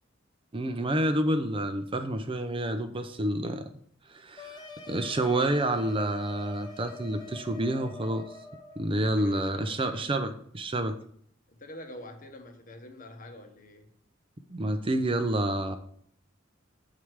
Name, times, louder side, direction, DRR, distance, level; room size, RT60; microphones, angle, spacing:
voice 1, 0.5-3.7 4.1-8.3 8.8-11.0 14.5-15.8, right 1 dB, 25° right, 8 dB, 0.5 m, -29 dB
sound 1, 4.4-8.8, left 3 dB, 20° left, 0.7 m, -45 dB
voice 2, 9.0-10.1 11.5-13.8, left 1 dB, 45° left, 5 dB, 1.1 m, -45 dB
7.2 x 4.8 x 4.6 m, 0.63 s
head